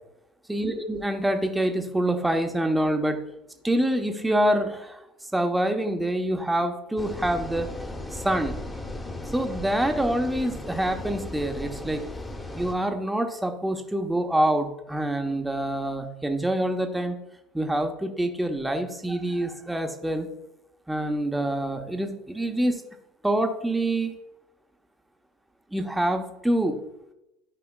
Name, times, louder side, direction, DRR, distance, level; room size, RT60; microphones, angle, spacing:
voice 1, 0.5-3.2 3.6-5.0 5.3-7.7 8.1-8.6 9.3-12.0 12.5-17.2 17.5-20.3 20.9-22.8 23.2-24.1 25.7-26.8, right 1 dB, 5° right, 5 dB, 1.1 m, -26 dB
sound 1, 7.0-12.8, left 1 dB, 15° left, 1.4 m, -36 dB
13.0 x 4.9 x 2.4 m, 0.86 s
hypercardioid pair, 75°, 0 cm